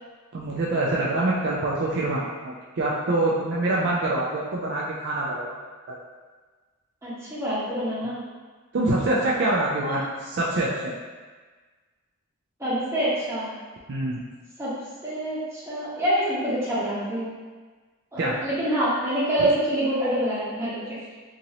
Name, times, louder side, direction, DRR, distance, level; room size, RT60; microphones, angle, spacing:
voice 1, 0.3-5.5 5.9-6.0 8.7-10.9 13.9-14.2 18.2-18.4 19.4-19.5, right 2 dB, 50° right, -5 dB, 0.4 m, -25 dB
voice 2, 7.0-8.2 9.8-10.0 12.6-13.5 14.6-14.7 15.0-17.3 18.1-21.0, right 1 dB, 10° right, -11 dB, 1.0 m, -26 dB
2.9 x 2.6 x 2.8 m, 1.4 s
head